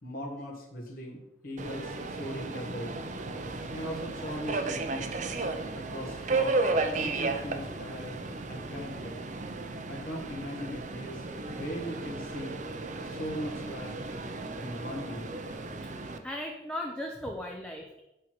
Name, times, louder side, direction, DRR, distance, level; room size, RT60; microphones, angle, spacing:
voice 1, 0.0-2.9 3.7-5.1 5.7-8.2 8.5-9.2 9.9-12.6 13.0-14.0 14.6-15.4, equal, 50° left, -2 dB, 1.7 m, -39 dB
Subway metro underground, 1.6-16.2, right 3 dB, 45° right, 0.7 m, -34 dB
voice 2, 16.2-18.0, left 1 dB, 5° left, 0 dB, 0.7 m, -37 dB
8.7 x 4.6 x 6.0 m, 0.91 s
head